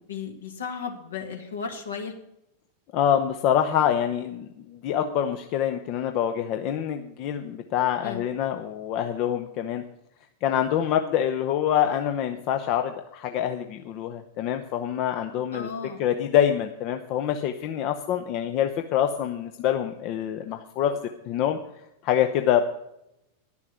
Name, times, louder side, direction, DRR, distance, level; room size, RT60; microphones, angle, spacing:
voice 1, 0.0-2.1 8.0-8.2 15.5-16.1, left 6 dB, 65° left, 5 dB, 1.7 m, -35 dB
voice 2, 2.9-9.8 10.4-15.7 16.0-21.0 21.3-21.6 22.0-22.6, left 10 dB, 40° left, 6 dB, 0.7 m, -25 dB
11.0 x 7.1 x 8.2 m, 0.82 s
figure-of-eight pair, 90°, 0 cm